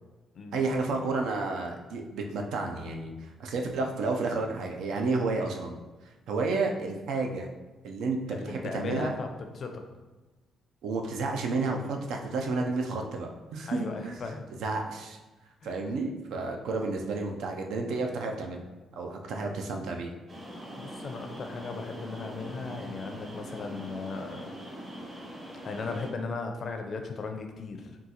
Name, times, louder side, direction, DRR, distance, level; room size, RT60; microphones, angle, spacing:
voice 1, 0.5-5.8 6.3-7.5 7.8-9.2 10.8-14.2 14.6-15.2 15.6-18.6 18.9-20.1, right 3 dB, 80° right, 2 dB, 0.4 m, -31 dB
voice 2, 8.3-9.3 9.5-9.8 13.7-14.5 15.6-15.7 20.8-24.5 25.6-28.0, left 4 dB, 50° left, 4 dB, 0.4 m, -37 dB
sound 1, 20.3-26.1, equal, 35° right, 0.8 m, -42 dB
3.7 x 2.3 x 2.8 m, 1.2 s
cardioid pair, 90°, 0 cm